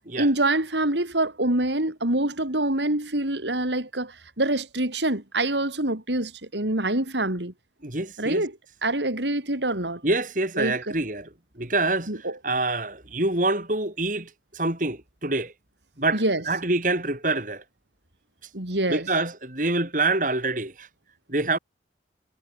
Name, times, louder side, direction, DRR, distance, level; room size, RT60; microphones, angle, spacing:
voice 1, 0.2-7.5 8.2-8.5 8.8-10.0 10.6-10.7 12.1-12.4 16.1-16.4 18.5-19.1, right 1 dB, 85° right, 4.6 m, -25 dB
voice 2, 7.8-8.5 10.0-11.3 11.6-15.5 16.0-17.6 18.9-20.9 21.3-21.6, right 2 dB, 45° right, 5.4 m, -26 dB
head